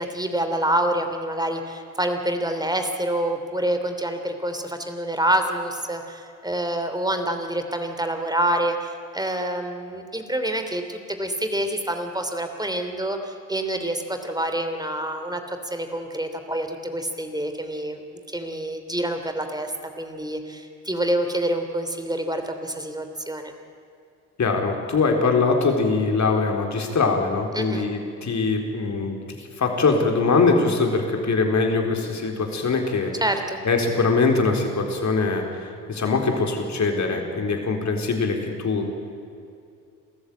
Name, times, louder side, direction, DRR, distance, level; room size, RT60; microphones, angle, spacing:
voice 1, 0.0-18.0 18.3-23.5 27.5-27.9 33.2-33.6, right 1 dB, 10° right, 6 dB, 3.1 m, -27 dB
voice 2, 24.4-29.1 29.6-33.1 33.6-38.9, left 4 dB, 45° left, 3 dB, 4.3 m, -22 dB
27.5 x 14.5 x 8.7 m, 2.5 s
hypercardioid pair, 50°, 38 cm